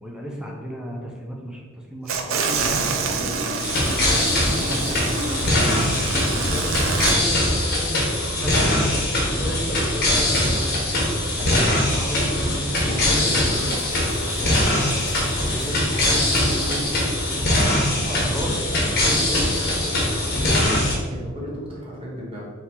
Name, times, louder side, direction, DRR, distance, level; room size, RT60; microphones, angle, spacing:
voice 1, 0.0-2.4 2.9-3.9 4.3-7.4 7.7-7.9 8.4-8.9 9.2-11.7 11.9-13.8 14.2-14.7 15.3-16.9 18.3-18.5 18.8-19.9, equal, 5° right, -1 dB, 0.6 m, -34 dB
sound 1, 2.1-7.2, right 4 dB, 80° right, 0.5 m, -26 dB
sound 2, 3.4-18.3, left 1 dB, 75° left, 0.8 m, -38 dB
sound 3, 3.6-21.0, left 1 dB, 50° left, 1.0 m, -22 dB
voice 2, 17.9-20.8 21.1-22.5, equal, 25° right, -5 dB, 0.9 m, -34 dB
3.7 x 2.9 x 4.4 m, 1.6 s
head